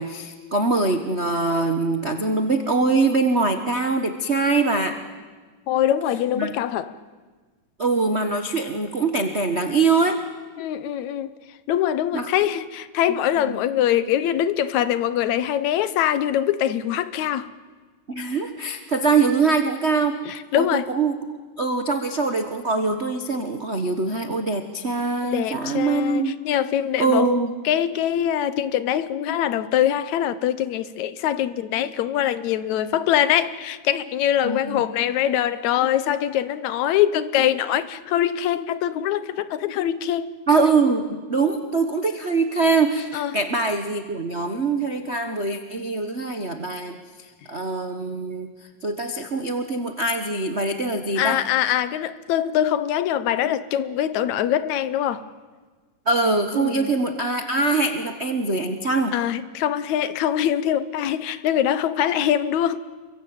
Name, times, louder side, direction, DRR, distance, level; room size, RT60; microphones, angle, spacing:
voice 1, 0.0-5.0 6.3-6.5 7.8-10.2 12.1-12.3 13.1-13.2 13.5-13.6 18.1-20.2 20.6-21.2 21.6-26.3 27.0-27.5 34.4-34.8 40.5-47.0 47.5-48.5 48.8-51.4 56.0-59.1, right 3 dB, 55° right, 0.7 m, -23 dB
voice 2, 5.7-6.9 10.6-11.3 11.7-17.5 20.3-20.9 25.2-27.3 27.7-40.3 43.1-43.3 51.2-55.3 56.5-56.9 59.1-62.8, left 11 dB, 70° left, 2.2 m, -23 dB
28.5 x 23.0 x 8.8 m
omnidirectional pair, 3.6 m